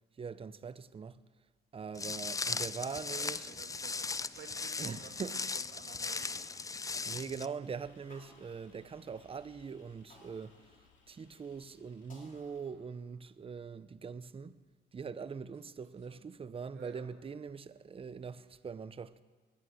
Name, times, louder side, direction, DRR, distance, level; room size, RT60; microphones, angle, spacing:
voice 1, 0.2-1.2 1.7-3.5 4.8-5.3 7.1-10.6 11.1-14.6 14.9-19.2, right 6 dB, 30° right, 0.6 m, -42 dB
Walk footsteps, 2.0-7.5, left 4 dB, 15° left, 0.4 m, -38 dB
voice 2, 2.9-5.4 5.7-6.6 16.1-16.3 16.7-17.1, right 7 dB, 70° right, 2.2 m, -54 dB
sound 1, 6.1-7.4 8.1-9.3 10.1-11.3 12.1-13.3, left 1 dB, 45° left, 4.2 m, -62 dB
sound 2, 7.6-12.7, left 5 dB, 70° left, 2.5 m, -65 dB
20.0 x 8.9 x 6.4 m
cardioid pair, 90°, 20 cm